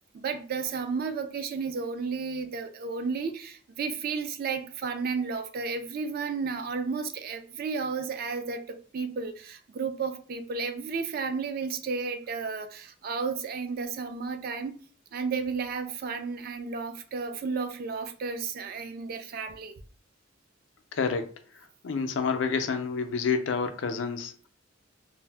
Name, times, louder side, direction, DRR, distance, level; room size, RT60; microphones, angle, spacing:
voice 1, 0.1-14.8 15.1-19.7, right 5 dB, 50° right, 0.3 m, -33 dB
voice 2, 20.9-21.3 21.8-24.5, left 5 dB, 80° left, 0.4 m, -28 dB
2.6 x 2.0 x 3.3 m
head